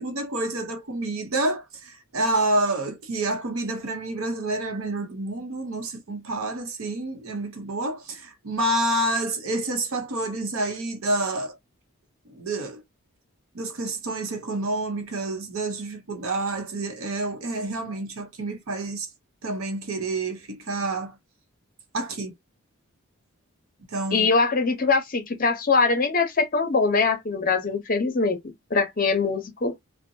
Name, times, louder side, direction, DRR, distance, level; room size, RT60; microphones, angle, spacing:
voice 1, 0.0-11.6 12.3-12.8 13.5-19.1 19.4-21.2 21.9-22.3 23.9-24.3, right 2 dB, 75° right, 0.8 m, -28 dB
voice 2, 24.1-28.4 28.7-29.8, left 4 dB, 40° left, 0.7 m, -22 dB
2.7 x 2.1 x 2.6 m
head